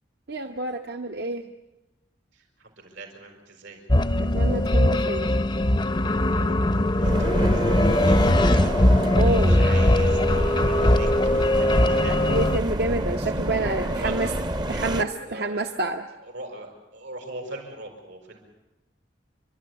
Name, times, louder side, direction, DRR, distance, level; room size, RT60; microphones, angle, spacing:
voice 1, 0.3-1.4 4.2-5.3 9.1-9.6 12.3-14.3 14.7-16.0, right 2 dB, 60° right, 5 dB, 0.9 m, -28 dB
voice 2, 2.3-3.8 6.3-8.8 9.5-11.1 11.3-12.2 13.2-13.6 13.9-14.3 15.2-15.7 16.2-18.5, right 2 dB, 90° right, 3 dB, 5.8 m, -41 dB
sound 1, 3.9-12.6, left 1 dB, 25° left, 0.7 m, -20 dB
sound 2, 7.0-15.0, right 1 dB, 25° right, 0.7 m, -28 dB
28.5 x 12.5 x 9.6 m, 1.0 s
head